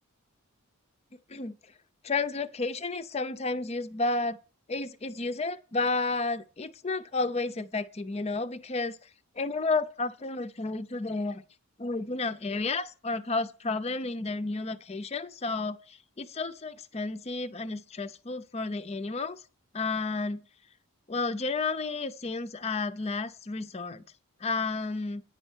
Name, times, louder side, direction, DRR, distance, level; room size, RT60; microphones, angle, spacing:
voice 1, 2.0-4.4 4.7-9.1 9.4-11.4 11.8-19.4 19.7-20.4 21.1-24.0 24.4-25.2, left 3 dB, 30° left, 0.5 m, -31 dB
9.6 x 5.4 x 7.9 m
head